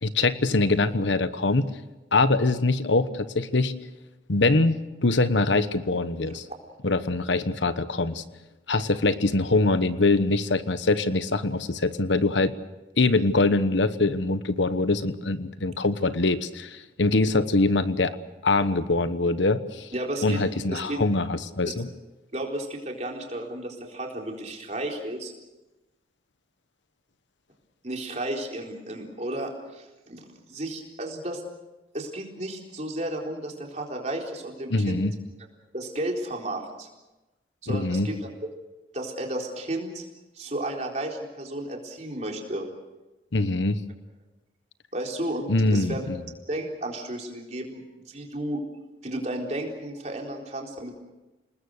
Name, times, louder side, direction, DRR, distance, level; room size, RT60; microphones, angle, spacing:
voice 1, 0.0-1.7 2.1-3.7 4.3-4.8 5.0-6.4 6.8-8.2 8.7-12.5 13.0-18.2 18.4-19.9 20.2-21.9 34.7-35.1 37.7-38.1 43.3-43.8 45.5-46.2, left 2 dB, 80° left, 12 dB, 1.1 m, -23 dB
voice 2, 19.9-20.4 20.7-21.0 22.3-25.3 27.8-31.4 31.9-35.0 35.7-36.9 37.6-38.2 38.9-40.1 40.4-42.7 44.9-46.1 46.5-47.8 48.1-48.6 49.0-50.9, right 1 dB, 40° right, 0 dB, 4.1 m, -33 dB
29.0 x 20.0 x 6.6 m, 1.1 s
head